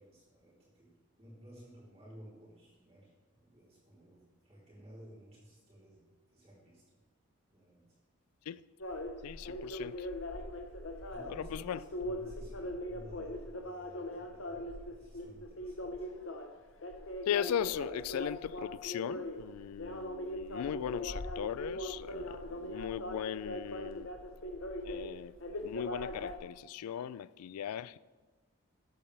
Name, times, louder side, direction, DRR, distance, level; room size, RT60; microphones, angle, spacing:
voice 1, 0.0-6.8 7.5-7.8 11.1-16.1, right 1 dB, 30° right, 3.6 m, -55 dB
sound 1, 8.8-26.4, left 1 dB, 60° left, 0.9 m, -41 dB
voice 2, 9.2-10.1 11.3-11.8 17.3-24.1 24.8-28.0, left 9 dB, 90° left, 0.3 m, -38 dB
12.5 x 8.6 x 3.3 m
head